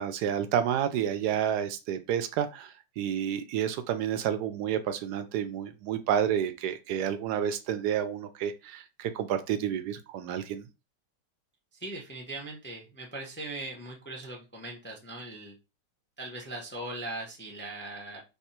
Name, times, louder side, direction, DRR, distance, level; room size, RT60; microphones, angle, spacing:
voice 1, 0.0-10.7, right 9 dB, 70° right, 10 dB, 1.1 m, -30 dB
voice 2, 11.7-15.5 16.2-18.2, right 2 dB, 10° left, 1 dB, 0.6 m, -40 dB
3.5 x 3.5 x 4.3 m, 0.28 s
omnidirectional pair, 2.0 m